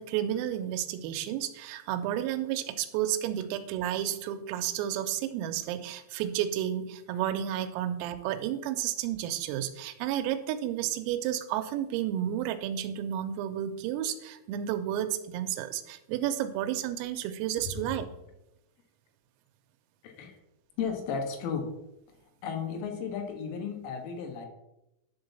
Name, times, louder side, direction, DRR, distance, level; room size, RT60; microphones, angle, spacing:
voice 1, 0.0-18.1, right 11 dB, 90° right, 9 dB, 3.4 m, -31 dB
voice 2, 20.0-20.4 20.8-21.8 22.4-24.5, left 6 dB, 75° left, 3 dB, 3.8 m, -34 dB
11.0 x 3.9 x 6.9 m, 0.88 s
omnidirectional pair, 5.9 m